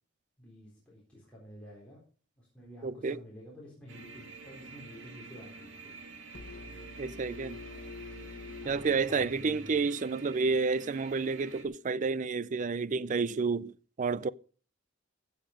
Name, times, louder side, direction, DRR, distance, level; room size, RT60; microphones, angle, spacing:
voice 1, 0.4-2.0 2.4-6.0 8.6-9.7, equal, 5° left, 3.9 m, -50 dB
voice 2, 2.8-3.2 7.0-7.6 8.6-14.3, right 4 dB, 40° right, 0.4 m, -30 dB
sound 1, 3.9-11.7, right 3 dB, 75° right, 2.1 m, -49 dB
sound 2, 6.3-10.2, left 4 dB, 70° left, 1.3 m, -47 dB
15.0 x 7.2 x 5.1 m
head